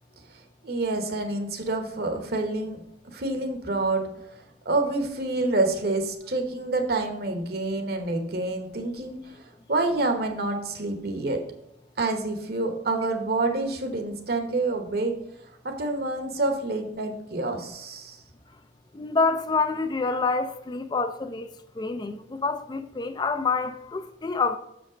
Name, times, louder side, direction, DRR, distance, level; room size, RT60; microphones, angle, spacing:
voice 1, 0.6-2.8 3.1-4.1 4.6-11.4 12.0-15.1 15.6-18.2, right 2 dB, 60° right, 1.1 m, -27 dB
voice 2, 18.9-21.5 21.8-24.6, left 4 dB, 25° left, 0.4 m, -27 dB
6.7 x 5.2 x 5.0 m
head